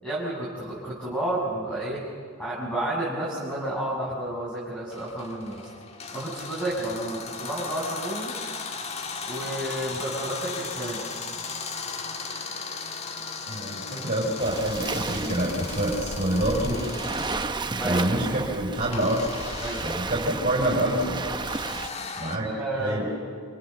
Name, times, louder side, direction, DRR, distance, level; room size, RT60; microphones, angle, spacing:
voice 1, 0.0-2.0 2.4-5.7 6.1-8.3 9.3-11.0 17.8-18.0 19.6-19.8 22.4-23.1, right 1 dB, 5° left, -8 dB, 6.7 m, -31 dB
sound 1, 4.9-17.5 18.9-22.4, left 4 dB, 35° left, 1.6 m, -37 dB
voice 2, 13.5-16.9 17.9-19.3 19.8-21.2 22.2-22.5 22.8-23.0, right 1 dB, 40° right, -5 dB, 5.9 m, -26 dB
Waves surf, 14.4-21.9, right 3 dB, 20° right, 0.9 m, -32 dB
29.0 x 28.5 x 7.1 m, 2.1 s
head